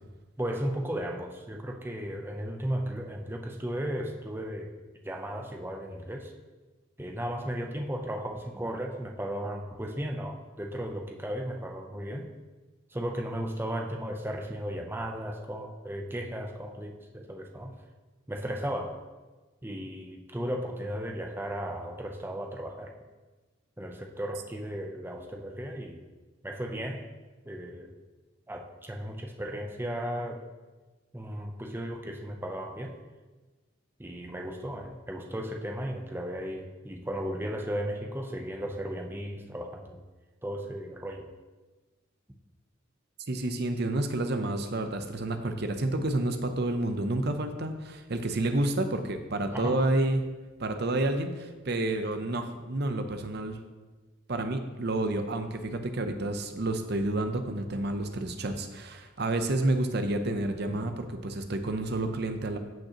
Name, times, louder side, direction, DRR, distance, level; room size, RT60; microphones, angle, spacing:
voice 1, 0.4-4.7 5.0-6.3 7.0-12.3 12.9-17.7 18.3-19.0 19.6-22.9 23.8-26.0 26.4-27.1 27.5-27.9 28.5-30.4 31.1-32.9 34.0-40.0 40.4-41.3 49.5-49.8, equal, 10° right, 3 dB, 0.6 m, -35 dB
voice 2, 43.3-50.2 50.6-53.6 54.3-62.6, right 2 dB, 50° right, 7 dB, 0.7 m, -29 dB
15.0 x 5.2 x 2.9 m, 1.3 s
head